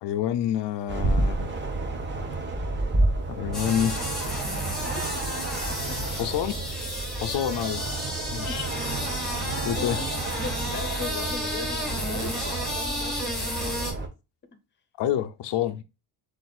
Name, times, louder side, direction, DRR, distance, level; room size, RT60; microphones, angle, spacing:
voice 1, 0.0-1.5 3.0-4.0 5.5-6.6 7.2-7.9 8.3-8.7 9.6-10.2 15.0-15.8, left 10 dB, 75° left, 0.6 m, -28 dB
sound 1, 0.9-14.1, right 2 dB, 25° right, 0.9 m, -30 dB
sound 2, 3.5-13.9, equal, ahead, 1.5 m, -32 dB
voice 2, 4.5-5.1 5.9-6.0 8.5-8.6 9.8-10.1 10.4-13.6, left 4 dB, 25° left, 0.8 m, -38 dB
7.6 x 2.6 x 2.3 m
cardioid pair, 145°, 42 cm